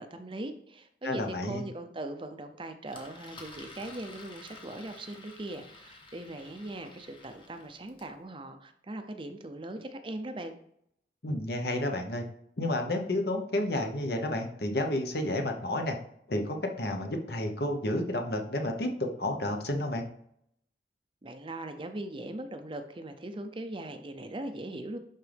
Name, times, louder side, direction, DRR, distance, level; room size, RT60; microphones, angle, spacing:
voice 1, 0.0-10.5 21.2-25.0, right 1 dB, 30° right, 7 dB, 0.6 m, -40 dB
voice 2, 1.0-1.6 11.2-12.2 12.6-16.0 16.3-20.0, left 1 dB, 60° left, 4 dB, 1.1 m, -31 dB
Engine, 2.9-8.1, left 2 dB, 30° left, 1.2 m, -51 dB
11.0 x 3.9 x 3.5 m, 0.71 s
head